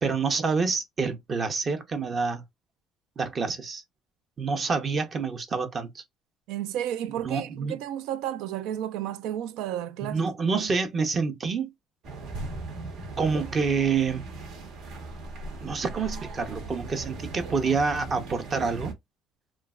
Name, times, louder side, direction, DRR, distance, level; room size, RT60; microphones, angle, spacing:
voice 1, 0.0-2.4 3.2-3.8 4.4-6.0 7.1-7.8 10.0-11.7 13.2-14.3 15.6-18.9, right 5 dB, 30° right, 0.6 m, -27 dB
voice 2, 6.5-10.3, right 11 dB, 90° right, 0.4 m, -32 dB
sound 1, 12.0-18.9, right 2 dB, 70° right, 1.1 m, -38 dB
3.1 x 2.4 x 2.3 m
cardioid pair, 140°, 0 cm